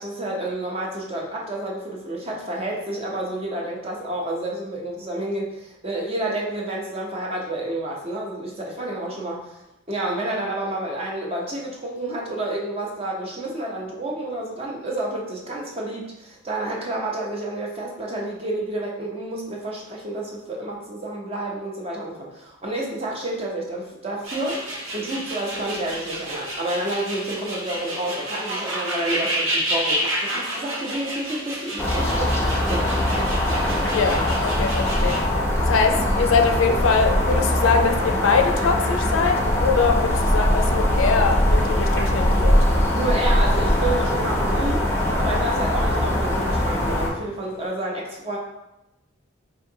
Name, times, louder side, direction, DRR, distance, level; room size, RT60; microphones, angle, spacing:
voice 1, 0.0-9.6 9.9-32.4 32.7-33.3 42.9-48.4, right 1 dB, 30° right, -2 dB, 0.6 m, -29 dB
sound 1, 24.2-35.2, right 1 dB, 75° right, 0.8 m, -30 dB
sound 2, 31.8-47.1, left 1 dB, 15° left, 0.5 m, -21 dB
voice 2, 33.9-35.3 35.7-42.7, left 5 dB, 75° left, 5 dB, 0.4 m, -23 dB
sound 3, 36.9-47.7, equal, 45° right, 1.0 m, -41 dB
4.9 x 2.6 x 2.7 m, 0.93 s
head